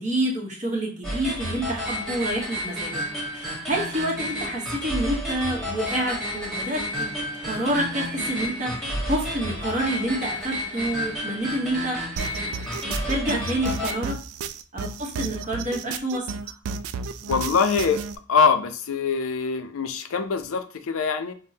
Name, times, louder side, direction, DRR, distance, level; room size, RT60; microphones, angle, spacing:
voice 1, 0.0-3.0 3.3-6.8 7.4-8.7 9.1-12.0 12.8-14.2 14.7-16.5, right 1 dB, 35° right, -1 dB, 1.0 m, -28 dB
sound 1, 1.0-13.9, equal, ahead, 1.3 m, -31 dB
sound 2, 12.2-18.2, right 5 dB, 85° right, 0.3 m, -32 dB
voice 2, 17.3-18.0 18.3-21.3, left 5 dB, 70° left, 8 dB, 0.4 m, -23 dB
5.2 x 2.1 x 2.7 m, 0.39 s
head